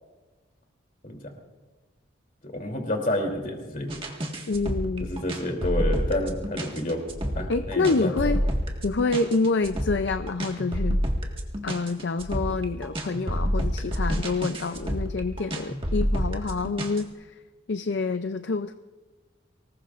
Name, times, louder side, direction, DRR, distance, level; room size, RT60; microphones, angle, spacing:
voice 1, 2.4-3.9 5.0-7.0 7.3-8.1, left 1 dB, 40° left, 2 dB, 3.1 m, -29 dB
sound 1, 3.9-17.0, equal, 25° right, 1.7 m, -28 dB
voice 2, 4.5-5.1 7.5-8.4 8.8-11.0 11.6-17.4 17.7-18.7, left 3 dB, 60° left, 9 dB, 0.5 m, -27 dB
24.5 x 20.0 x 2.5 m, 1.3 s
head